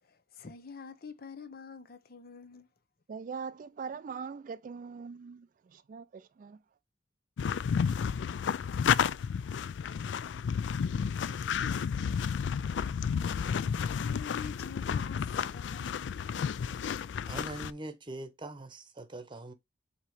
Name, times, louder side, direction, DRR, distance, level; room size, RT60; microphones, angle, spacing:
voice 1, 0.0-2.7 14.0-16.1, left 6 dB, 55° left, 0.7 m, -47 dB
voice 2, 3.1-6.6, right 5 dB, 50° right, 0.3 m, -42 dB
sound 1, 7.4-17.7, left 7 dB, 90° left, 0.3 m, -31 dB
voice 3, 17.3-19.5, right 2 dB, 30° right, 0.9 m, -42 dB
7.4 x 2.9 x 4.8 m
head